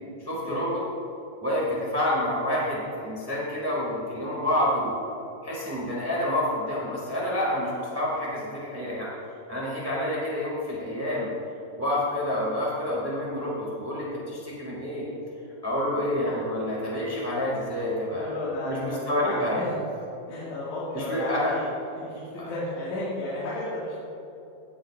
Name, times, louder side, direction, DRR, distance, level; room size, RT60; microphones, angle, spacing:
voice 1, 0.2-0.8 1.4-5.0 5.4-9.1 9.5-11.3 11.8-15.1 15.6-18.3 18.6-19.6 20.9-21.6 22.4-22.5, left 1 dB, 20° right, -6 dB, 0.4 m, -28 dB
voice 2, 18.1-19.8 20.3-21.7 21.9-24.0, left 1 dB, 90° left, -9 dB, 4.3 m, -33 dB
17.5 x 9.7 x 2.6 m, 3.0 s
omnidirectional pair, 4.8 m